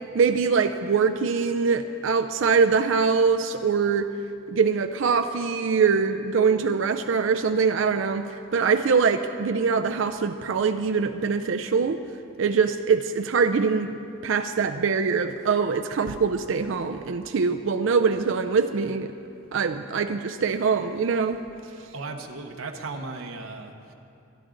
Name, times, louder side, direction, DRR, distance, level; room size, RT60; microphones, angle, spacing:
voice 1, 0.1-4.1 4.5-12.0 12.4-14.0 14.2-19.1 19.5-21.4, right 5 dB, 65° right, 7 dB, 0.4 m, -23 dB
voice 2, 21.7-23.9, right 3 dB, 80° right, 3 dB, 0.9 m, -37 dB
23.5 x 10.5 x 3.9 m, 2.7 s
head